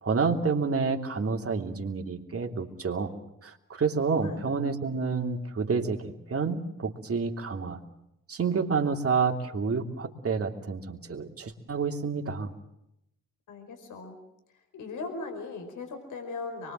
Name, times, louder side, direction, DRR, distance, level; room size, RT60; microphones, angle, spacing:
voice 1, 0.0-3.1 3.4-7.8 8.3-12.5, right 5 dB, 45° right, 3 dB, 3.1 m, -29 dB
voice 2, 13.5-14.2 14.7-16.7, left 3 dB, 70° left, 5 dB, 4.9 m, -38 dB
24.5 x 22.5 x 7.7 m, 0.83 s
supercardioid pair, 50°, 32 cm